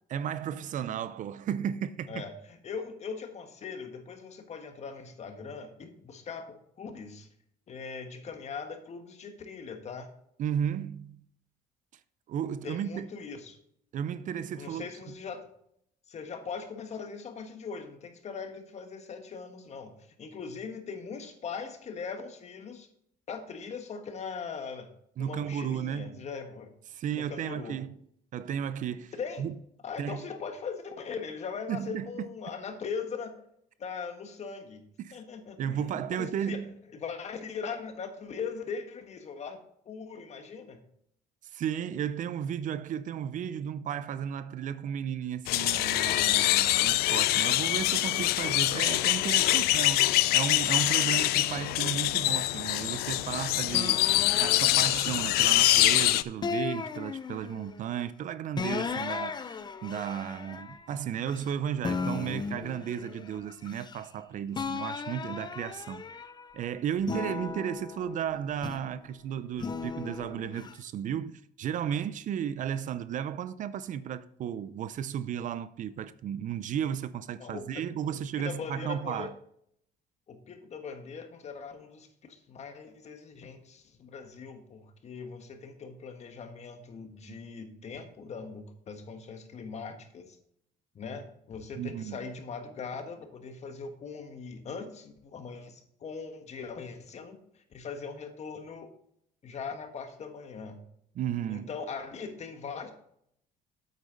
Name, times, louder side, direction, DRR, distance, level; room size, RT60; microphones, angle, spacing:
voice 1, 0.1-2.2 10.4-11.2 12.3-13.1 13.9-14.8 25.2-26.2 26.9-28.0 28.3-29.1 29.4-29.6 30.0-30.3 31.7-32.3 35.0-35.2 35.6-36.7 41.5-54.0 54.4-66.1 66.5-79.4 87.3-87.4 91.8-92.2 101.1-101.7, right 9 dB, 55° right, 0.5 m, -34 dB
voice 2, 2.1-7.3 7.7-10.1 12.6-13.6 14.5-15.5 16.1-19.9 20.2-22.9 23.3-24.9 25.2-26.7 27.1-27.8 29.2-29.4 29.8-33.4 33.8-34.8 35.1-36.6 36.9-39.6 39.8-40.8 77.4-77.8 78.1-78.2 78.4-79.3 80.3-90.4 90.9-98.9 99.4-100.8 101.5-102.9, left 5 dB, 45° left, 1.5 m, -40 dB
sound 1, 45.5-56.2, left 17 dB, 75° left, 0.4 m, -25 dB
sound 2, 53.7-55.9 56.4-57.8 58.6-61.5 61.8-64.2 64.5-66.5 67.0-69.0 69.6-70.7, left 5 dB, 25° left, 0.6 m, -37 dB
8.3 x 8.3 x 3.9 m
cardioid pair, 100°, 16 cm